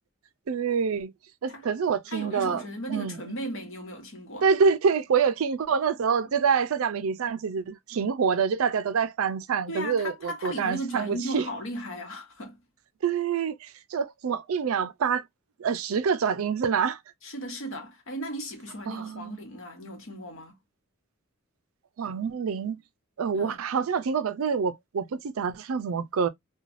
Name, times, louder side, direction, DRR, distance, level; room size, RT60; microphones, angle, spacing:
voice 1, 0.5-1.1 1.4-2.6 2.9-3.4 4.4-11.5 13.0-15.2 15.6-17.0 18.9-19.4 22.0-22.8 23.2-26.3, right 6 dB, 75° right, 0.4 m, -26 dB
voice 2, 2.1-4.5 9.7-12.6 17.2-20.5 23.3-23.6, equal, 65° left, 1.0 m, -36 dB
3.1 x 2.2 x 2.4 m
head